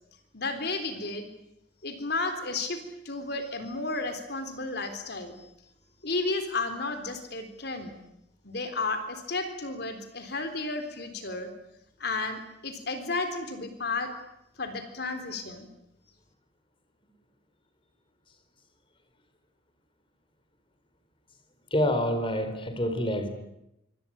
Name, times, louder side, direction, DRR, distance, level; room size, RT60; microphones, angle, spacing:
voice 1, 0.3-1.3 1.8-5.5 6.0-8.0 8.4-11.5 12.0-14.1 14.6-15.7, left 3 dB, 55° left, 8 dB, 3.8 m, -33 dB
voice 2, 21.7-23.3, left 1 dB, 25° left, 7 dB, 4.1 m, -27 dB
27.0 x 25.0 x 8.8 m, 0.84 s
head